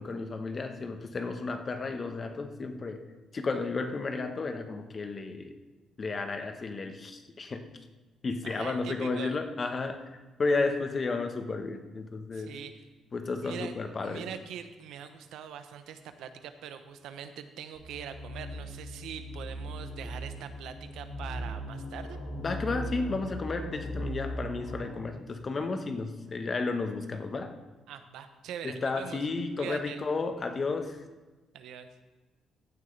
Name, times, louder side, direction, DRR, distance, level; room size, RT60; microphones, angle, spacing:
voice 1, 0.0-3.0 3.3-5.6 6.0-7.7 8.2-10.1 10.4-12.5 13.1-14.3 22.4-27.6 28.6-31.0, left 3 dB, 40° left, 7 dB, 1.1 m, -32 dB
voice 2, 8.4-9.4 12.3-12.7 13.4-13.7 14.0-22.2 27.9-29.2 29.6-30.0 31.5-31.9, right 8 dB, 85° right, 9 dB, 0.8 m, -42 dB
sound 1, 17.7-25.0, equal, 90° left, 2.5 m, -38 dB
15.0 x 9.4 x 3.3 m, 1.2 s
cardioid pair, 90°, 0 cm